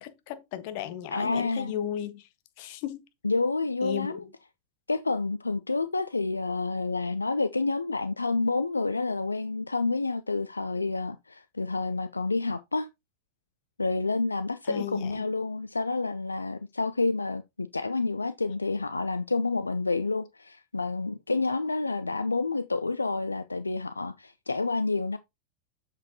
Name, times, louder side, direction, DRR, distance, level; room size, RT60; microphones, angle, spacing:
voice 1, 0.0-2.3 2.6-3.0 3.8-4.3 14.6-15.2, left 11 dB, 45° left, 1.1 m, -35 dB
voice 2, 1.1-1.7 3.2-4.2 4.9-12.9 13.8-25.2, left 3 dB, 80° left, 0.3 m, -29 dB
7.2 x 6.4 x 2.8 m
figure-of-eight pair, 90°, 0 cm